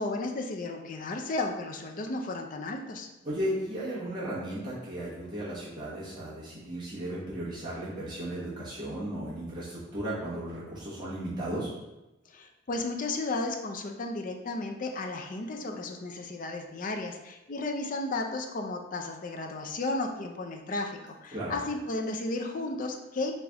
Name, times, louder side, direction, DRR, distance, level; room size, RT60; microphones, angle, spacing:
voice 1, 0.0-3.1 12.3-23.3, left 2 dB, 40° left, 4 dB, 0.4 m, -34 dB
voice 2, 3.2-11.7 21.3-21.5, right 1 dB, 20° right, -9 dB, 1.3 m, -35 dB
4.0 x 3.3 x 3.5 m, 1.0 s
head